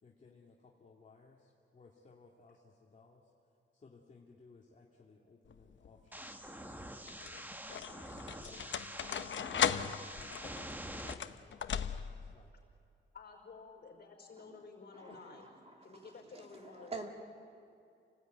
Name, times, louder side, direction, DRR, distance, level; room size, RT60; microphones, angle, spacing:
voice 1, 0.0-3.3 3.7-6.8 8.2-9.0 10.1-12.5 15.1-15.2, left 4 dB, 40° left, -2 dB, 2.2 m, -61 dB
sound 1, 5.5-6.0 6.8-12.3, left 8 dB, 70° left, 0.9 m, -37 dB
sound 2, 6.1-11.1, right 1 dB, 10° right, 1.2 m, -46 dB
voice 2, 13.1-15.5 15.8-17.1, left 4 dB, 55° left, 2 dB, 5.1 m, -52 dB
voice 3, 14.9-17.1, right 3 dB, 30° right, 2 dB, 2.3 m, -48 dB
29.0 x 19.0 x 9.2 m, 2.4 s
wide cardioid pair, 150°, 20 cm